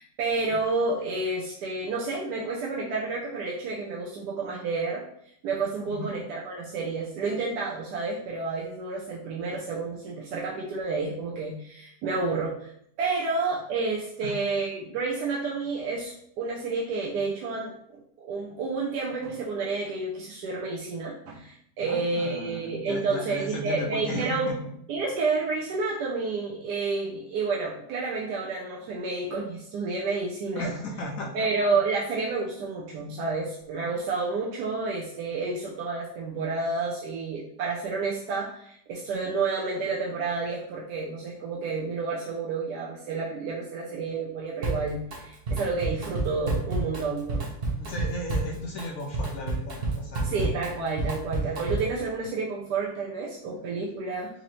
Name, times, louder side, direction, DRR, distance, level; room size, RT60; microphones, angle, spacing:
voice 1, 0.0-5.0 5.4-12.7 13.0-24.5 24.9-30.7 31.3-47.5 50.2-54.3, right 3 dB, 80° right, -5 dB, 1.1 m, -30 dB
voice 2, 21.8-24.6 30.6-31.3 47.7-50.5, left 1 dB, 70° left, 0 dB, 0.9 m, -35 dB
Drum kit, 44.6-45.2 45.5-52.0, right 3 dB, 45° right, 0.8 m, -30 dB
4.1 x 2.7 x 3.0 m, 0.70 s
omnidirectional pair, 1.8 m